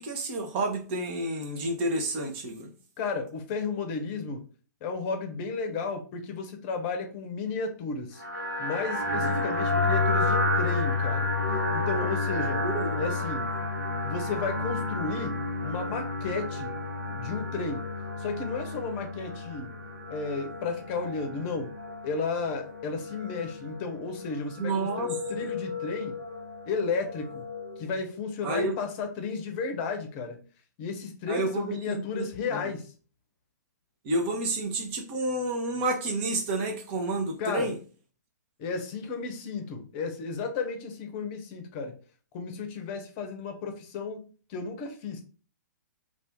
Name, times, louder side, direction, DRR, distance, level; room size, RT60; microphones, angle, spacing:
voice 1, 0.0-2.7 9.2-9.4 12.6-13.1 24.6-25.1 28.4-28.8 31.3-32.6 34.0-37.8, right 2 dB, 35° right, 0.9 m, -30 dB
voice 2, 3.0-4.4 4.8-8.2 8.6-11.3 11.7-12.6 13.0-13.5 14.0-15.3 15.6-16.7 17.1-17.9 18.2-19.7 20.1-21.7 22.0-26.1 26.6-27.4 27.8-30.4 30.8-32.9 37.4-37.7 38.6-41.9 42.3-45.2, left 4 dB, 35° left, 0.7 m, -33 dB
sound 1, 8.2-27.9, left 2 dB, 90° right, 1.2 m, -31 dB
2.7 x 2.5 x 3.5 m
figure-of-eight pair, 120°, 10 cm